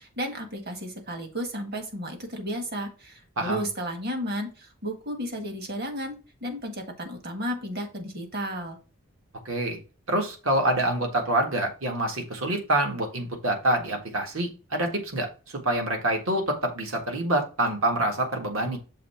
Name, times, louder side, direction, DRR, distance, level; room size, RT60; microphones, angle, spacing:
voice 1, 0.0-8.8, equal, 45° right, 5 dB, 1.6 m, -33 dB
voice 2, 3.4-3.7 9.5-9.8 10.1-15.3 15.6-18.8, right 1 dB, 70° right, 3 dB, 1.7 m, -26 dB
6.6 x 3.2 x 5.6 m, 0.34 s
head